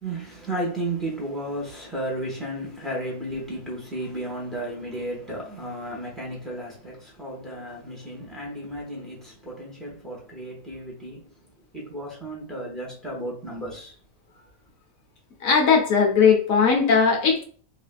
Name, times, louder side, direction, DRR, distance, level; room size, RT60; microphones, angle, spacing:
voice 1, 0.0-11.3 11.7-13.9, right 1 dB, ahead, 1.0 m, -33 dB
voice 2, 15.4-17.4, left 6 dB, 85° left, 1.3 m, -18 dB
3.5 x 2.8 x 2.2 m
omnidirectional pair, 1.4 m